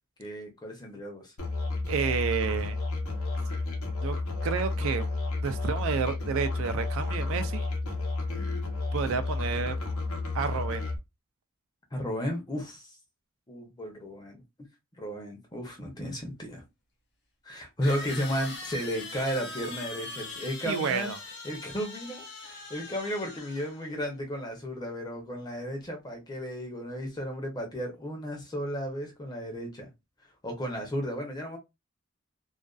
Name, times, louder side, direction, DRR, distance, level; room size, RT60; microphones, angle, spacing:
voice 1, 0.2-1.3 11.9-13.0 13.5-14.4 15.0-16.6 17.4-21.1 21.4-29.9 30.4-31.6, equal, 20° left, 0.6 m, -34 dB
Musical instrument, 1.4-11.0, left 3 dB, 85° left, 0.8 m, -31 dB
voice 2, 1.9-2.8 4.0-4.2 4.4-5.1 5.4-7.7 8.9-9.8 10.3-10.9 20.6-21.2, right 6 dB, 65° right, 0.3 m, -30 dB
sound 1, 16.2-16.3 17.8-23.9, left 3 dB, 50° left, 0.8 m, -41 dB
2.4 x 2.2 x 2.3 m
head